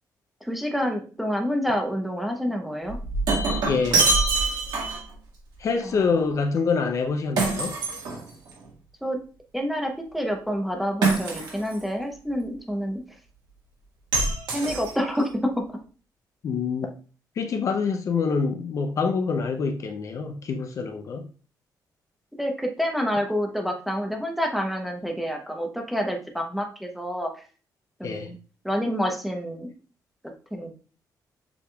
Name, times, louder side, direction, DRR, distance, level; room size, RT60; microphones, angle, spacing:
voice 1, 0.4-3.0 5.8-6.2 9.0-9.2 9.5-13.0 14.5-15.8 22.4-27.3 28.0-28.4 28.6-29.7 30.5-30.7, equal, ahead, 0.7 m, -28 dB
Shatter, 2.9-5.1 7.4-8.6 11.0-11.8 14.1-15.2, right 3 dB, 75° right, 1.5 m, -25 dB
voice 2, 3.6-4.1 5.6-7.7 16.4-16.9 17.4-21.3 28.0-28.3, left 5 dB, 45° left, 0.5 m, -26 dB
6.8 x 3.4 x 2.2 m
cardioid pair, 160°, 7 cm